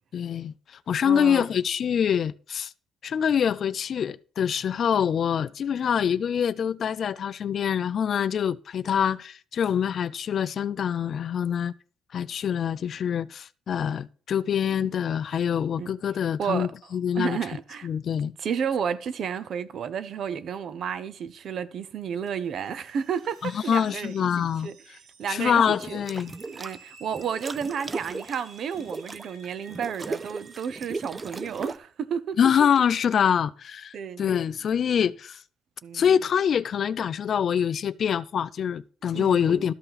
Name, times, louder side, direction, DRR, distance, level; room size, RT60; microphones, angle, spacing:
voice 1, 0.1-2.7 3.0-11.7 12.1-17.4 17.8-18.3 23.4-24.7 25.3-26.3 32.4-35.4 35.9-39.7, left 8 dB, 55° left, 0.4 m, -25 dB
voice 2, 1.0-1.5 15.3-15.4 15.8-15.9 16.4-16.7 17.1-17.9 18.4-24.8 25.2-26.0 26.5-32.4 33.9-34.3 35.8-36.2 39.1-39.7, right 7 dB, 65° right, 0.7 m, -32 dB
sound 1, 22.6-31.5, right 5 dB, 90° right, 1.5 m, -53 dB
sound 2, 23.2-23.9 25.8-26.8 27.1-31.8, right 3 dB, 25° right, 0.5 m, -38 dB
13.0 x 5.5 x 4.0 m
cardioid pair, 90°, 0 cm